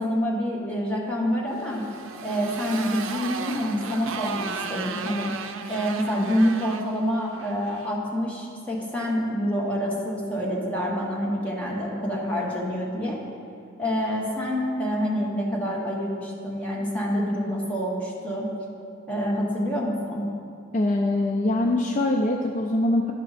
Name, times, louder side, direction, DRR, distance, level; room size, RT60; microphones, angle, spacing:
voice 1, 0.0-1.9 2.2-5.3 5.7-13.2 13.8-18.5 19.1-20.3, equal, 5° left, -4 dB, 1.3 m, -27 dB
Motorcycle, 1.5-7.9, right 5 dB, 75° right, 0.5 m, -35 dB
voice 2, 20.7-23.1, left 1 dB, 40° left, 2 dB, 0.4 m, -23 dB
11.5 x 5.6 x 4.1 m, 2.5 s
head